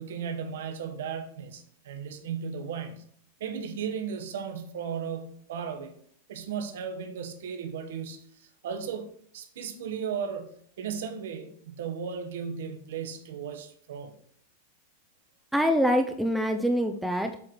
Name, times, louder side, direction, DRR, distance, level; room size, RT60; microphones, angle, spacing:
voice 1, 0.0-3.0 3.4-6.0 6.3-14.1, right 7 dB, 75° right, 6 dB, 1.2 m, -36 dB
voice 2, 15.5-17.4, equal, 5° right, 6 dB, 0.4 m, -25 dB
7.7 x 3.1 x 5.8 m, 0.62 s
supercardioid pair, 140°, 0 cm